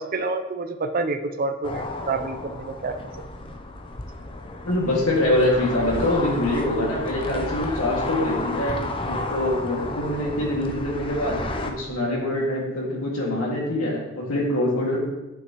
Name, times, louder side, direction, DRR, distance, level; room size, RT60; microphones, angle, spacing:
voice 1, 0.0-3.2, right 3 dB, 40° right, 7 dB, 0.5 m, -28 dB
sound 1, 1.6-11.7, left 2 dB, 25° left, 0.5 m, -32 dB
voice 2, 4.7-15.0, left 1 dB, 85° left, -2 dB, 2.1 m, -24 dB
8.2 x 6.3 x 3.0 m, 1.0 s
head